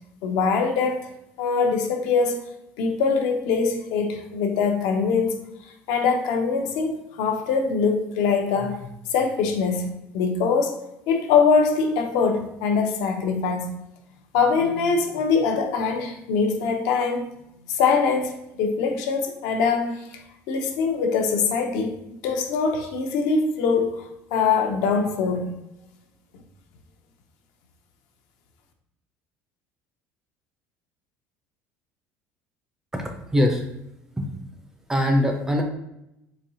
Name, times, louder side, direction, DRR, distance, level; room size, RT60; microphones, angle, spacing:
voice 1, 0.2-1.1 1.4-2.4 2.8-5.4 5.9-10.8 11.1-13.7 14.3-17.3 17.7-20.2 20.5-25.5, left 5 dB, 70° left, 0.6 m, -23 dB
voice 2, 32.9-33.7 34.2-34.3 34.9-35.6, left 1 dB, 10° right, 0.4 m, -22 dB
4.2 x 2.7 x 2.7 m
cardioid pair, 165°, 6 cm